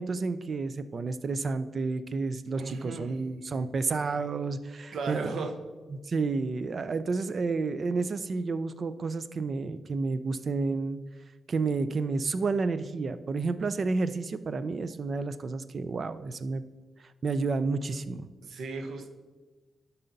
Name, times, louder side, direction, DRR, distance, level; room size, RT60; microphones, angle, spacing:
voice 1, 0.0-5.2 6.1-11.0 11.5-16.6 17.2-18.3, right 4 dB, 40° right, 13 dB, 0.4 m, -30 dB
voice 2, 2.6-3.1 4.9-5.6 18.4-19.1, right 4 dB, 70° right, 7 dB, 0.8 m, -35 dB
12.0 x 5.5 x 4.0 m, 1.2 s
wide cardioid pair, 145°, 0 cm